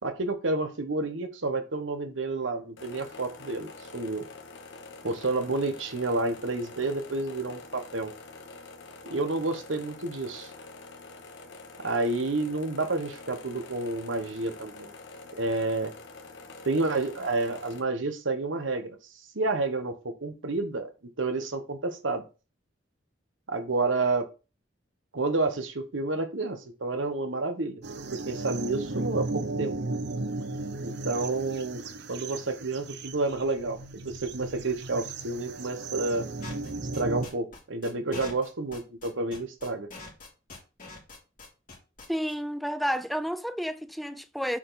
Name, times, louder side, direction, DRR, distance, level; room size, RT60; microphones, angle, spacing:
voice 1, 0.0-4.2 5.0-8.1 9.0-10.5 11.8-14.9 15.4-15.9 16.6-19.0 19.3-20.9 21.2-22.2 23.5-24.3 25.1-27.8 28.1-29.7 30.8-31.8 32.1-36.3 36.9-39.9, right 3 dB, 80° right, 1.2 m, -30 dB
sound 1, 2.8-17.8, left 3 dB, 65° left, 1.2 m, -46 dB
sound 2, 27.8-37.3, right 2 dB, 60° right, 0.8 m, -35 dB
sound 3, 36.4-42.3, left 3 dB, 45° left, 3.4 m, -43 dB
voice 2, 42.1-44.6, equal, ahead, 0.4 m, -31 dB
7.2 x 4.8 x 4.1 m
head